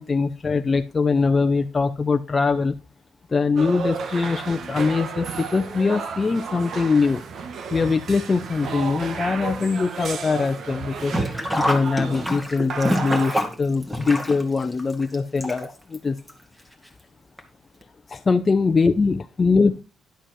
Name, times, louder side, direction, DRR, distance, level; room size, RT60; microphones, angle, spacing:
voice 1, 0.0-2.7 3.3-7.2 7.7-11.1 11.6-16.2 18.1-19.8, left 4 dB, 30° left, 6 dB, 0.7 m, -22 dB
sound 1, 3.6-12.4 12.7-13.3, right 5 dB, 60° right, 1.4 m, -32 dB
Sink (filling or washing), 11.0-16.0 16.3-16.4 17.4-17.5 17.8-17.9, equal, 10° right, 2.2 m, -27 dB
11.5 x 5.1 x 6.4 m, 0.32 s
cardioid pair, 90°, 0 cm